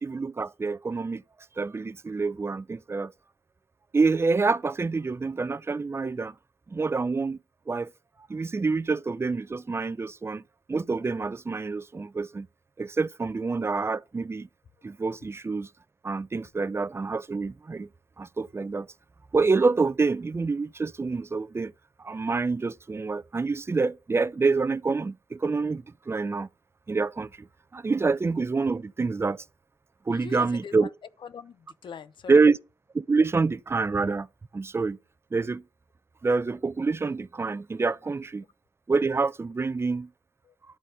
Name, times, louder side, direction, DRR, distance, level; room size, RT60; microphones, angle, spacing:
voice 1, 0.0-1.2 1.6-3.1 3.9-6.3 6.7-7.4 7.7-7.9 8.3-10.4 10.7-12.5 12.8-14.5 14.8-15.7 16.0-17.9 18.2-18.9 19.3-21.7 22.0-26.5 26.9-27.5 27.7-29.4 30.1-30.9 32.3-32.6 32.9-34.3 34.5-35.0 35.3-35.6 36.2-38.4 38.9-40.1, right 4 dB, 30° right, 0.5 m, -27 dB
voice 2, 30.1-30.9 31.2-32.4 40.5-40.6, left 7 dB, 80° left, 0.8 m, -42 dB
11.5 x 4.2 x 7.6 m
cardioid pair, 65°, 8 cm